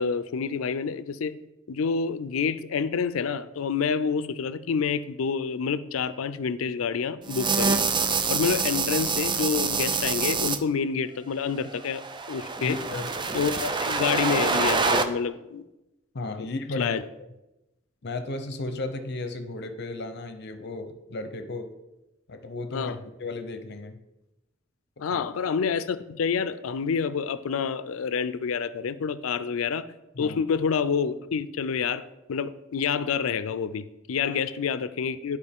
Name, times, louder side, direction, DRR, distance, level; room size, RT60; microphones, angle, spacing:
voice 1, 0.0-1.3 1.7-7.8 8.3-12.0 12.3-12.8 13.3-15.7 16.4-16.5 16.8-17.0 22.7-23.0 25.0-29.9 30.2-32.0 32.3-35.4, left 6 dB, 85° left, 14 dB, 0.4 m, -28 dB
sound 1, 7.3-10.6 11.7-15.0, right 4 dB, 25° right, 0.4 m, -26 dB
voice 2, 12.6-13.1 16.1-17.0 18.0-21.7 22.3-22.9 23.2-24.0 25.0-25.2 30.1-30.4 34.2-34.4, left 2 dB, 55° left, 8 dB, 0.7 m, -34 dB
11.0 x 4.8 x 3.6 m, 0.96 s
head